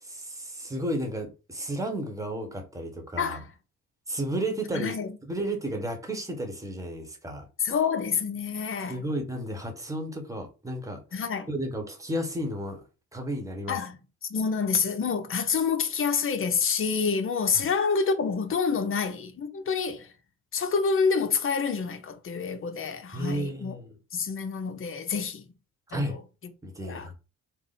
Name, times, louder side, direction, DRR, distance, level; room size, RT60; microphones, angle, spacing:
voice 1, 0.0-3.4 4.1-5.0 5.2-7.5 8.9-11.2 11.5-12.8 13.1-13.8 17.5-17.7 23.1-24.0 25.9-26.2 26.6-27.1, right 1 dB, 10° right, 1.2 m, -33 dB
voice 2, 4.7-5.1 7.6-9.0 11.1-11.5 13.7-14.0 14.3-20.1 20.5-23.8 24.1-25.5 25.9-26.2 26.8-27.1, left 5 dB, 45° left, 0.8 m, -27 dB
3.7 x 2.1 x 3.9 m
cardioid pair, 90°, 30 cm